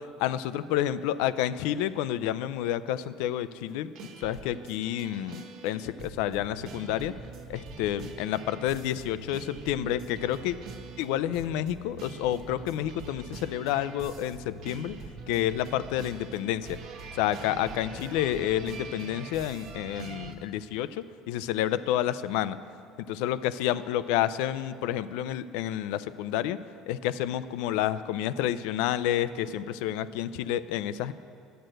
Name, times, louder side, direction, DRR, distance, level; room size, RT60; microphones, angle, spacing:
voice 1, 0.2-3.9 4.2-7.1 7.5-10.6 11.0-14.9 15.3-16.8 17.2-22.6 23.1-26.6 26.9-31.1, left 12 dB, 80° left, 15 dB, 0.4 m, -29 dB
sound 1, 3.9-20.3, right 3 dB, 65° right, 1.0 m, -44 dB
10.0 x 7.8 x 7.7 m, 2.4 s
cardioid pair, 130°, 0 cm